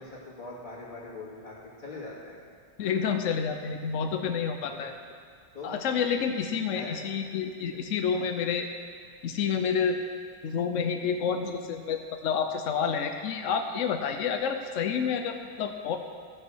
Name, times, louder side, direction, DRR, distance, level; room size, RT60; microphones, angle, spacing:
voice 1, 0.0-2.4 4.7-4.9 5.5-5.7 6.7-7.0 7.7-7.8 8.1-8.3, left 3 dB, 25° left, -7 dB, 2.5 m, -42 dB
voice 2, 2.8-4.9 5.6-8.7 9.2-10.0 10.4-16.0, left 6 dB, 80° left, 5 dB, 0.6 m, -29 dB
14.5 x 5.5 x 6.3 m, 2.1 s
omnidirectional pair, 2.0 m